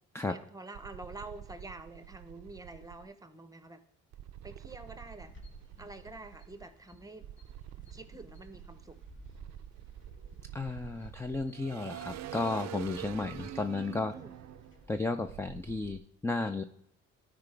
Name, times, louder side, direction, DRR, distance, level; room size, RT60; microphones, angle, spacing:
voice 1, 0.3-3.8 4.4-5.3 5.8-7.3 7.9-9.0 14.1-14.3 16.4-16.5, right 2 dB, 10° right, 10 dB, 0.8 m, -47 dB
sound 1, 0.7-3.0 4.1-6.7 7.2-16.0, right 12 dB, 60° right, 0.5 m, -47 dB
sound 2, 5.2-15.0, left 1 dB, 40° left, 1.9 m, -57 dB
voice 2, 10.5-14.1 14.9-16.6, left 3 dB, 10° left, 8 dB, 0.4 m, -33 dB
12.0 x 4.9 x 3.3 m, 0.79 s
cardioid pair, 90°, 30 cm